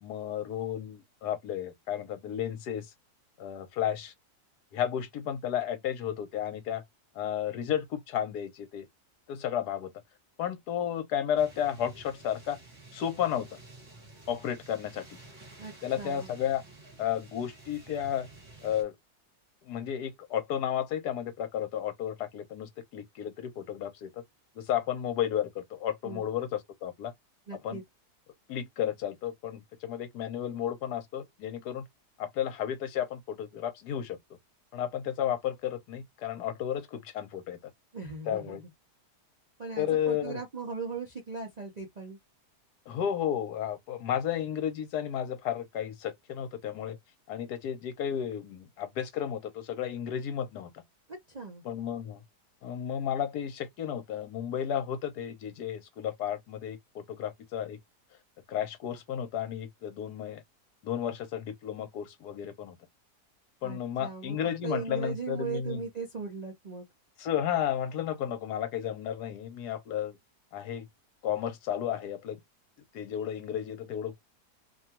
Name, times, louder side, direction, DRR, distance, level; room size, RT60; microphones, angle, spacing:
voice 1, 0.0-2.9 3.4-4.1 4.7-6.8 7.1-8.9 9.3-9.9 10.4-12.6 12.9-13.5 14.3-15.2 15.8-16.6 17.0-18.3 18.6-19.0 19.6-24.2 24.6-27.1 27.6-27.8 28.5-31.8 32.2-34.2 34.7-37.6 38.3-38.6 39.8-40.4 42.9-47.0 47.3-50.7 51.6-52.2 52.6-57.8 58.5-60.4 60.8-62.8 63.6-65.8 67.2-70.2 70.5-70.9 71.2-72.4 72.9-74.1, left 9 dB, 75° left, 1.2 m, -33 dB
sound 1, 11.4-18.8, right 2 dB, 30° right, 1.4 m, -51 dB
voice 2, 15.6-16.3 26.0-26.2 27.5-27.8 37.9-38.6 39.6-42.2 51.1-51.6 63.6-64.4 64.6-66.9 73.2-73.3, right 5 dB, 55° right, 0.4 m, -38 dB
2.8 x 2.3 x 2.8 m
omnidirectional pair, 1.8 m